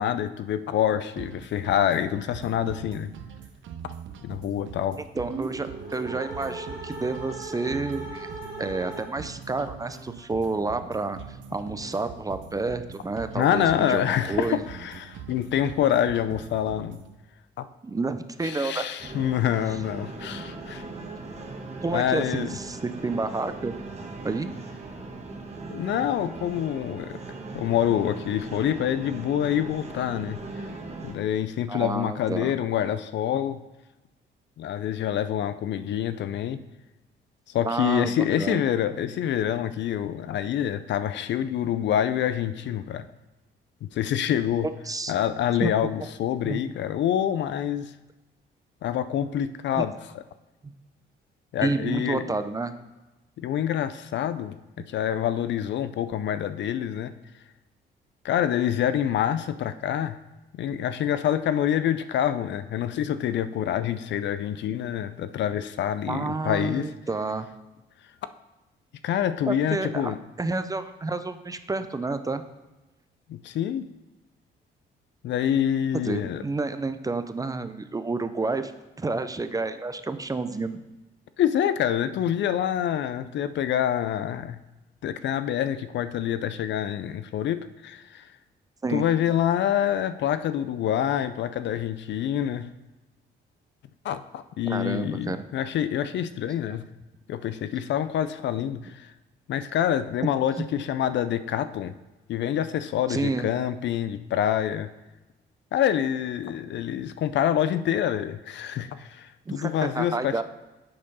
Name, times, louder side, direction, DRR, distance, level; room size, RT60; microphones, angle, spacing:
voice 1, 0.0-3.1 4.2-5.0 13.4-17.0 17.6-17.7 18.4-20.9 21.9-22.5 25.7-27.2 27.5-30.4 31.0-33.6 34.6-36.6 37.5-43.1 43.8-44.7 45.1-47.9 48.8-50.2 51.5-52.2 53.4-54.6 54.9-57.1 58.2-60.2 60.5-66.9 69.0-70.2 73.3-73.9 75.2-76.4 81.4-84.6 85.0-88.3 88.9-92.7 94.0-96.8 97.3-99.1 99.5-102.0 102.3-104.9 105.7-110.4, left 10 dB, 65° left, 12 dB, 0.4 m, -26 dB
sound 1, 1.2-17.2, right 8 dB, 70° right, 0.6 m, -43 dB
voice 2, 5.2-8.3 8.6-14.0 14.3-14.6 17.8-18.8 21.8-23.7 24.2-24.5 31.7-32.5 37.6-38.6 44.9-45.1 45.6-45.7 46.4-46.6 49.8-49.9 50.6-50.7 51.6-52.7 66.1-67.5 69.5-72.4 76.0-78.7 79.0-80.8 88.8-89.0 94.7-95.4 103.1-103.5 109.5-110.4, right 3 dB, 15° right, 10 dB, 0.5 m, -30 dB
sound 2, 5.2-9.4, right 2 dB, 50° right, 2.2 m, -38 dB
sound 3, 19.0-31.1, right 3 dB, 35° right, 1.2 m, -39 dB
7.6 x 4.4 x 5.4 m, 1.1 s
cardioid pair, 90°, 20 cm